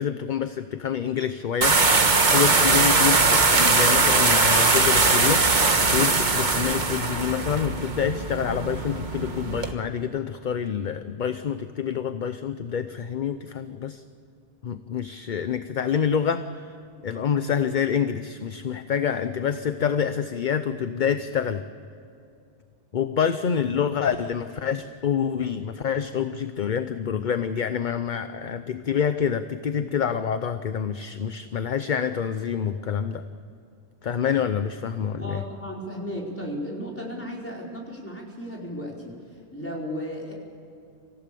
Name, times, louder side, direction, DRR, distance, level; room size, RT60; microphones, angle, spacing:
voice 1, 0.0-1.9 2.3-5.4 5.9-14.0 14.6-16.7 17.0-21.6 22.9-33.2 34.0-35.4, left 7 dB, 50° left, 10 dB, 0.8 m, -27 dB
sound 1, 1.6-9.7, right 3 dB, 45° right, 1.5 m, -20 dB
voice 2, 35.2-39.2 39.5-40.3, equal, 10° left, -3 dB, 4.6 m, -34 dB
26.5 x 16.0 x 6.9 m, 2.6 s
omnidirectional pair, 1.1 m